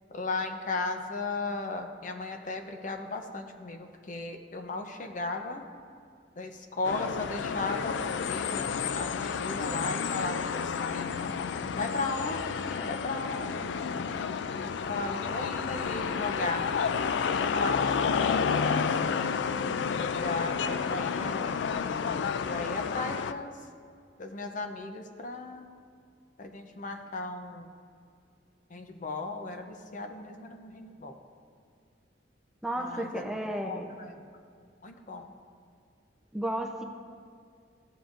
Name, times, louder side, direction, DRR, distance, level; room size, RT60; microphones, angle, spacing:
voice 1, 0.1-5.6 6.4-11.2 11.8-13.7 14.6-16.7 17.4-19.2 20.1-21.6 22.4-23.6 24.2-25.7 26.4-27.7 28.7-31.2 32.8-33.2 33.6-34.1 34.8-35.3, left 3 dB, 45° left, 5 dB, 0.7 m, -36 dB
sound 1, 6.8-23.3, left 6 dB, 75° left, 0.3 m, -30 dB
voice 2, 32.6-33.9 36.3-36.8, right 1 dB, 5° right, 1 dB, 0.6 m, -33 dB
16.0 x 7.3 x 2.6 m, 2.3 s
head